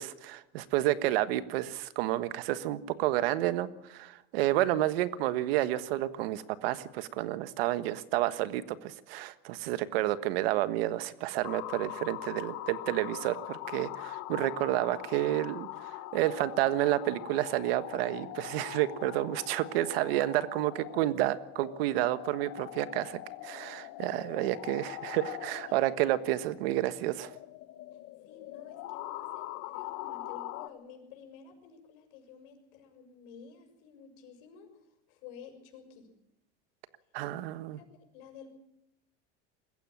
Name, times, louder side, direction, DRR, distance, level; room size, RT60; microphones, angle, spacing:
voice 1, 0.0-27.3 37.1-37.8, right 15 dB, 85° right, 13 dB, 1.4 m, -30 dB
sound 1, 11.4-30.7, left 16 dB, 55° left, 1.3 m, -42 dB
voice 2, 28.2-34.7 35.1-36.1 37.7-38.5, left 7 dB, 75° left, 4 dB, 6.6 m, -51 dB
21.5 x 15.5 x 8.8 m, 0.83 s
supercardioid pair, 120°, 29 cm